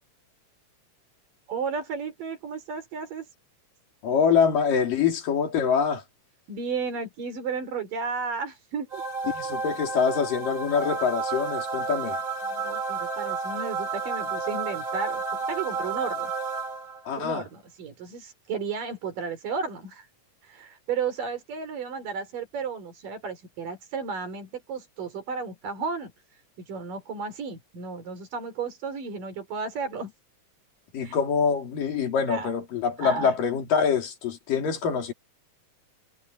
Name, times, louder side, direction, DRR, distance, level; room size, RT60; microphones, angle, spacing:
voice 1, 1.5-3.3 6.5-9.0 12.4-15.2 15.5-16.3 17.2-20.1 20.4-30.1 31.0-31.2 32.3-32.5 33.0-33.3, right 5 dB, 80° right, 5.9 m, -33 dB
voice 2, 4.0-6.0 9.3-12.2 17.1-17.5 30.9-35.1, left 6 dB, 85° left, 4.7 m, -25 dB
sound 1, 8.9-17.2, right 4 dB, 50° right, 3.5 m, -31 dB
omnidirectional pair, 3.8 m